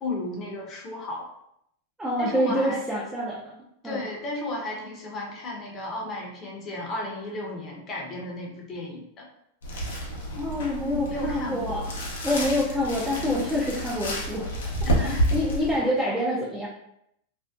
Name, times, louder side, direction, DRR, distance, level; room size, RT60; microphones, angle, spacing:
voice 1, 0.0-1.3 2.2-2.8 3.8-9.3 11.1-11.9 14.8-15.2, left 2 dB, 35° left, -2 dB, 0.7 m, -34 dB
voice 2, 2.0-4.1 10.1-11.9 12.2-16.7, left 1 dB, 10° right, -5 dB, 0.5 m, -27 dB
sound 1, 9.6-15.8, right 1 dB, 85° left, 0.6 m, -29 dB
2.5 x 2.0 x 2.3 m, 0.76 s
hypercardioid pair, 110°, 0 cm